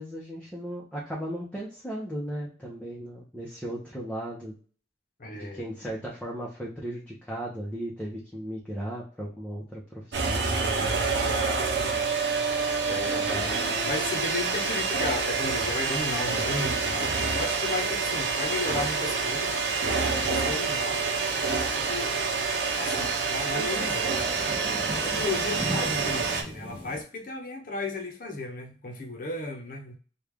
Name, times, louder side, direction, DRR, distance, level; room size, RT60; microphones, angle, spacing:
voice 1, 0.0-4.6 5.3-11.3, right 1 dB, 5° left, 0.8 m, -36 dB
voice 2, 5.2-5.7 11.6-12.1 12.8-19.5 20.2-22.1 22.8-24.2 25.0-29.9, left 3 dB, 50° left, 0.8 m, -35 dB
sound 1, 10.1-26.4, right 4 dB, 75° right, 0.7 m, -27 dB
sound 2, 15.3-27.0, equal, 30° right, 0.7 m, -43 dB
3.2 x 2.4 x 3.4 m
head